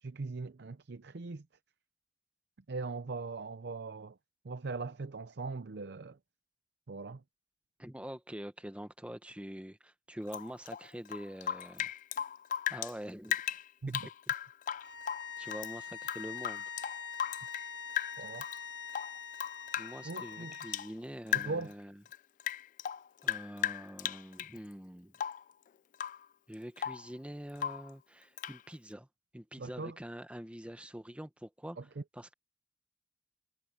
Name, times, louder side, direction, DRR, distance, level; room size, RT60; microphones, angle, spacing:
voice 1, 0.0-1.5 2.7-4.2 4.4-6.2 6.9-7.2 13.8-14.0 18.2-18.5 20.0-20.5 21.3-21.7 29.6-30.0 31.8-32.0, right 3 dB, 65° right, 0.6 m, -40 dB
voice 2, 7.8-11.9 12.7-13.4 13.9-14.0 15.4-16.6 19.8-22.0 23.2-25.1 26.5-29.1 29.3-31.8 32.1-32.3, equal, 5° right, 1.1 m, -45 dB
Rain / Drip, 10.3-12.9 13.2-15.7 16.0-17.7 18.0-18.6 18.9-20.9 21.3-21.7 22.1-24.6 25.1-25.5 25.9-26.3 26.5-27.1 27.6-27.9 28.4-28.6, left 10 dB, 45° left, 0.3 m, -37 dB
sound 1, 14.8-20.9, left 7 dB, 85° left, 3.2 m, -44 dB
head